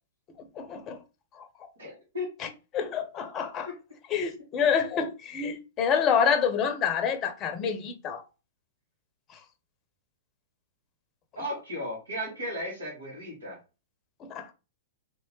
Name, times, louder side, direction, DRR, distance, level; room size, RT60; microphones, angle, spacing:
voice 1, 0.6-1.0 1.4-1.5 2.4-2.5 2.7-3.7 4.1-8.2 14.2-14.5, left 7 dB, 30° left, 0.7 m, -27 dB
voice 2, 1.8-2.3 11.4-13.6, left 1 dB, 75° right, 2.0 m, -35 dB
3.3 x 2.9 x 3.1 m
figure-of-eight pair, 105°, 0 cm